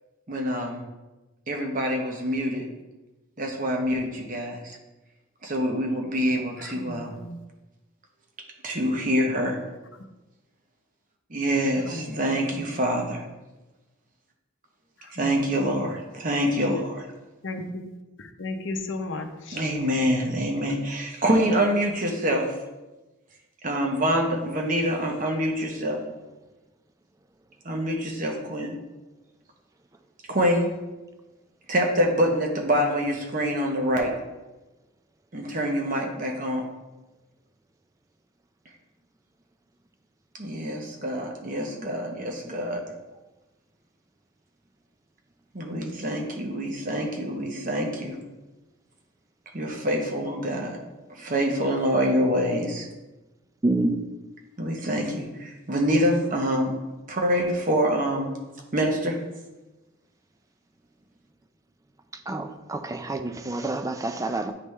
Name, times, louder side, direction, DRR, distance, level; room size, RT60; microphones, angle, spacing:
voice 1, 0.3-0.8 1.5-2.7 3.4-4.8 5.4-7.1 8.6-9.6 11.3-13.2 15.1-17.1 19.5-22.5 23.6-26.2 27.6-28.7 30.3-30.7 31.7-34.1 35.3-36.7 40.4-42.8 45.5-48.2 49.5-50.8 51.2-52.9 54.6-56.7 57.1-58.3 58.7-59.2, equal, 40° right, 2 dB, 0.9 m, -26 dB
voice 2, 6.8-7.4 11.8-12.2 15.2-15.8 17.4-17.9 18.2-19.6 20.3-20.4, left 2 dB, 70° left, 5 dB, 0.7 m, -35 dB
voice 3, 53.6-54.0 62.3-64.5, right 2 dB, 15° right, 7 dB, 0.3 m, -27 dB
9.5 x 3.4 x 3.2 m, 1.1 s
head